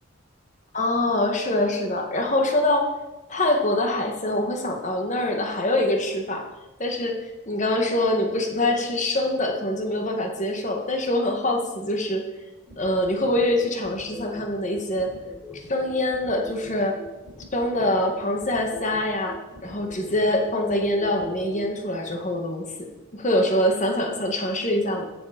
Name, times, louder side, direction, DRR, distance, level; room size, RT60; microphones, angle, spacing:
voice 1, 0.7-2.9 3.3-6.5 6.8-12.2 12.8-15.1 15.7-17.0 17.5-25.1, left 1 dB, 35° left, 3 dB, 1.8 m, -24 dB
sound 1, 12.7-21.7, left 1 dB, ahead, 4.8 m, -42 dB
16.0 x 7.5 x 5.2 m, 1.1 s
head